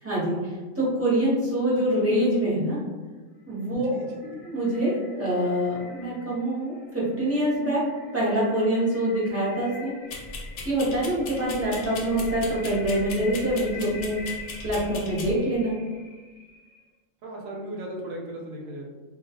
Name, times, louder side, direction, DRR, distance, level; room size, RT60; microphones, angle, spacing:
voice 1, 0.0-2.8 3.5-4.0 4.5-7.8 8.1-9.9 10.6-14.1 14.6-15.7, right 1 dB, 15° right, -8 dB, 0.6 m, -25 dB
sound 1, 3.5-16.9, left 3 dB, 35° left, 0.6 m, -45 dB
voice 2, 3.9-4.4 17.2-18.9, right 1 dB, 80° right, -1 dB, 1.0 m, -37 dB
sound 2, 10.1-15.3, left 3 dB, 70° left, 0.8 m, -38 dB
2.3 x 2.2 x 2.8 m, 1.3 s
omnidirectional pair, 1.4 m